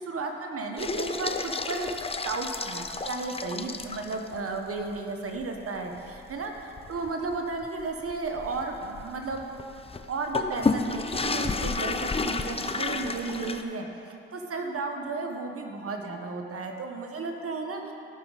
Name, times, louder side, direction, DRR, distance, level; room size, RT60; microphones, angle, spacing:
voice 1, 0.0-1.9 2.2-9.4 10.1-13.9 14.3-17.9, right 3 dB, 50° right, 3 dB, 1.3 m, -33 dB
sound 1, 0.8-4.4 4.8-4.9 5.4-5.5 6.0-13.6, left 4 dB, 20° left, 0.6 m, -31 dB
15.5 x 6.1 x 4.1 m, 2.7 s
hypercardioid pair, 50°, 30 cm